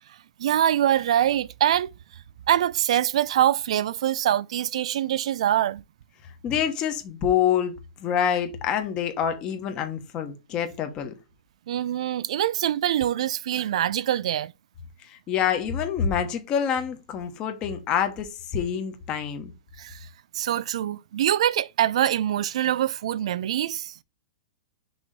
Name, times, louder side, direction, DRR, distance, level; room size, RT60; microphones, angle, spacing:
voice 1, 0.4-1.9 2.5-5.8 11.7-14.5 19.8-20.1 20.3-23.9, right 11 dB, 70° right, 0.3 m, -24 dB
voice 2, 6.4-11.1 15.0-19.5, left 8 dB, 25° left, 1.1 m, -26 dB
6.2 x 3.0 x 5.1 m
supercardioid pair, 165°, 4 cm